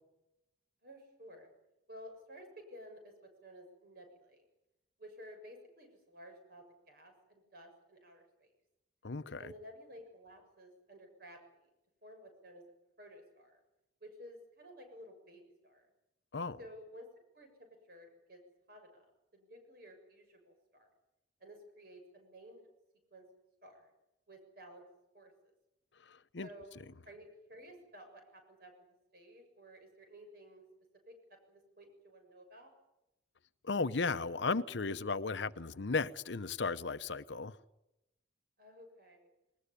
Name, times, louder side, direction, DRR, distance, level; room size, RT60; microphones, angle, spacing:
voice 1, 0.8-1.5 1.9-4.4 5.0-8.5 9.4-11.7 12.0-12.6 13.0-13.6 14.0-15.9 16.6-17.1 17.3-18.4 18.7-19.1 19.3-20.9 21.4-22.7 23.1-23.2 23.6-23.9 24.3-24.8 25.1-25.3 26.4-26.8 27.1-28.7 29.1-30.6 31.1-31.2 31.5-32.7 38.6-39.3, equal, 55° right, 6.9 m, -54 dB
voice 2, 9.0-9.5 16.3-16.6 26.3-26.5 33.6-37.6, left 4 dB, 75° left, 0.8 m, -35 dB
21.0 x 20.0 x 9.9 m
head